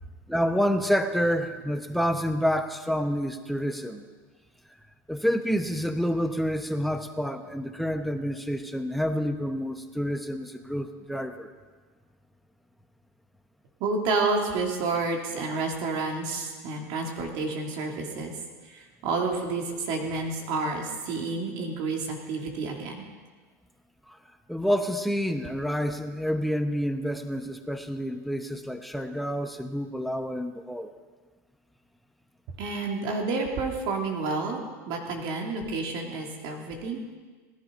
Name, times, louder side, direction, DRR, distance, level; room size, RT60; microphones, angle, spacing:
voice 1, 0.3-4.0 5.1-11.5 24.1-24.2 24.5-30.9, equal, ahead, 8 dB, 1.1 m, -28 dB
voice 2, 13.8-18.3 18.7-23.0 32.6-37.0, right 3 dB, 60° right, 1 dB, 3.2 m, -30 dB
18.0 x 11.5 x 5.4 m, 1.4 s
hypercardioid pair, 100°, 9 cm